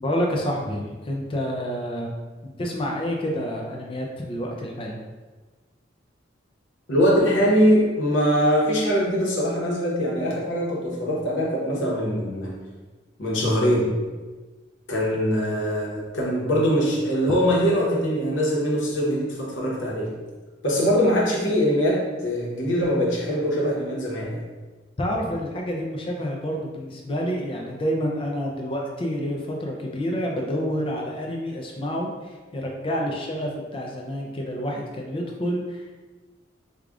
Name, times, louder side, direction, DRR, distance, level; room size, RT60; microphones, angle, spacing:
voice 1, 0.0-2.1 2.4-5.0 25.0-35.9, equal, 30° left, 0 dB, 0.4 m, -28 dB
voice 2, 6.9-12.5 13.2-13.9 14.9-20.1 20.6-24.4, equal, 75° left, -4 dB, 1.0 m, -22 dB
4.8 x 2.3 x 2.4 m, 1.3 s
head